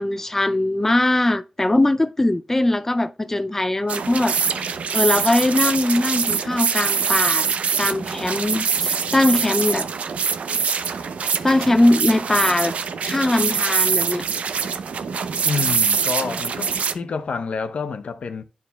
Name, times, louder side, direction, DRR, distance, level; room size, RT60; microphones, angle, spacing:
voice 1, 0.0-7.4 7.8-9.9 11.4-12.7 13.0-14.2, left 1 dB, 15° left, 0.4 m, -21 dB
sound 1, 3.9-16.9, right 6 dB, 75° right, 0.6 m, -24 dB
voice 2, 15.4-18.4, left 5 dB, 70° left, 0.8 m, -28 dB
11.5 x 4.8 x 2.2 m
cardioid pair, 70°, 2 cm